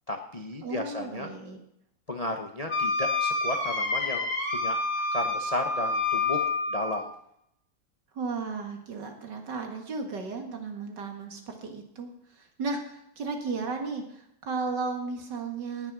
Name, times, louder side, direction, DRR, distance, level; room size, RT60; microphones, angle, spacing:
voice 1, 0.1-1.3 2.1-7.1, left 1 dB, 30° left, 4 dB, 0.6 m, -34 dB
voice 2, 0.6-1.6 8.1-15.9, right 4 dB, 55° right, 4 dB, 2.4 m, -34 dB
Wind instrument woodwind instrument, 2.7-7.1, left 3 dB, 80° left, 3.4 m, -28 dB
19.0 x 6.5 x 6.1 m, 0.75 s
omnidirectional pair, 2.2 m